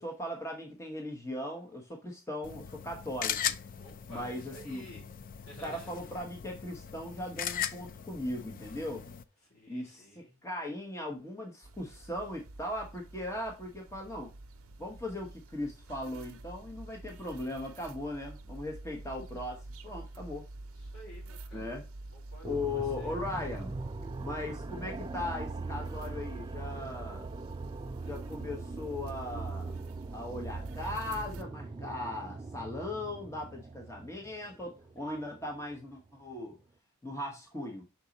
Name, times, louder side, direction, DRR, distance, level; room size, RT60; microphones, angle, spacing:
voice 1, 0.0-3.4 4.1-4.8 5.6-9.1 9.7-10.1 10.4-14.3 14.8-20.5 21.5-21.8 22.4-23.8 24.2-27.3 28.0-29.8 30.1-36.6 37.0-37.8, left 1 dB, 15° left, 1 dB, 1.1 m, -38 dB
sound 1, 2.4-9.2, left 9 dB, 40° left, 0.4 m, -39 dB
voice 2, 3.8-5.1 5.5-5.9 9.5-10.4 20.7-21.7 22.1-23.2, equal, 70° left, -2 dB, 4.1 m, -52 dB
sound 2, 11.6-31.4, right 2 dB, 75° right, 0.7 m, -46 dB
sound 3, 22.4-36.1, right 3 dB, 20° right, 0.3 m, -41 dB
6.0 x 4.5 x 4.1 m, 0.27 s
head